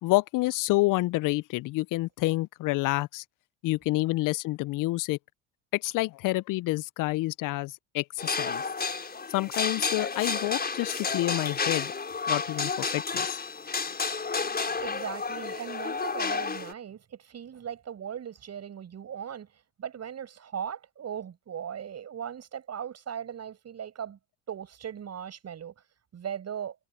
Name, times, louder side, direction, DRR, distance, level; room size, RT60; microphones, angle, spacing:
voice 1, 0.0-3.2 3.6-5.2 5.7-8.6 9.3-11.9 12.3-13.4, left 20 dB, 55° left, 0.7 m, -28 dB
sound 1, 8.2-16.7, left 4 dB, 25° left, 6.4 m, -31 dB
voice 2, 14.8-19.5 19.8-24.2 24.5-25.7 26.1-26.8, right 8 dB, 45° right, 7.2 m, -38 dB
hypercardioid pair, 70°, 37 cm